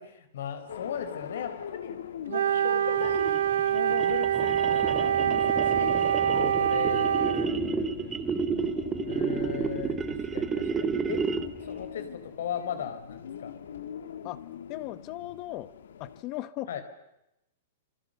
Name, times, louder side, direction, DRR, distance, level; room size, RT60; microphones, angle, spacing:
voice 1, 0.0-3.4 3.7-7.3 9.1-11.2 11.6-13.5 16.7-16.8, left 8 dB, 65° left, 10 dB, 4.5 m, -37 dB
sound 1, 0.7-16.2, left 8 dB, 80° left, 2.0 m, -42 dB
Wind instrument woodwind instrument, 2.3-7.5, right 9 dB, 75° right, 0.8 m, -25 dB
sound 2, 3.0-11.7, right 5 dB, 10° right, 0.9 m, -31 dB
voice 2, 7.3-8.2 14.2-14.4 14.7-15.7 16.0-16.7, left 16 dB, 25° left, 16 dB, 1.1 m, -38 dB
27.5 x 25.5 x 6.9 m, 0.88 s
supercardioid pair, 180°, 0 cm